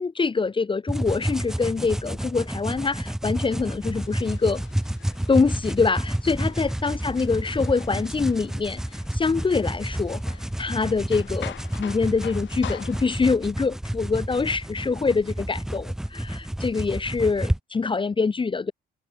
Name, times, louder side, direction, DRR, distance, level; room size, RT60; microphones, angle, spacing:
voice 1, 0.0-4.6 5.3-8.8 9.1-18.7, left 4 dB, 25° left, 0.8 m, -25 dB
sound 1, 0.9-17.6, right 1 dB, ahead, 0.3 m, -30 dB
sound 2, 3.9-13.4, left 11 dB, 70° left, 7.6 m, -45 dB
cardioid pair, 90°, 20 cm